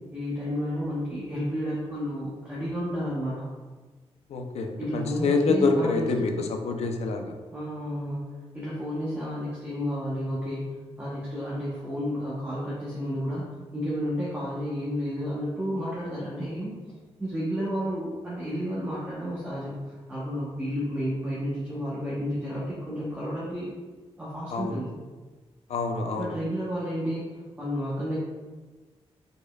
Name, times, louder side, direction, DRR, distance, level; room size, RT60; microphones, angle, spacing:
voice 1, 0.1-3.5 4.8-6.3 7.5-8.3 8.5-13.4 13.7-16.7 17.2-23.7 24.2-24.9 26.2-28.2, equal, 15° right, -8 dB, 0.9 m, -31 dB
voice 2, 4.3-7.3 24.5-24.8 25.7-26.3, left 3 dB, 75° left, 4 dB, 0.6 m, -26 dB
5.0 x 4.3 x 2.3 m, 1.3 s
wide cardioid pair, 140°, 11 cm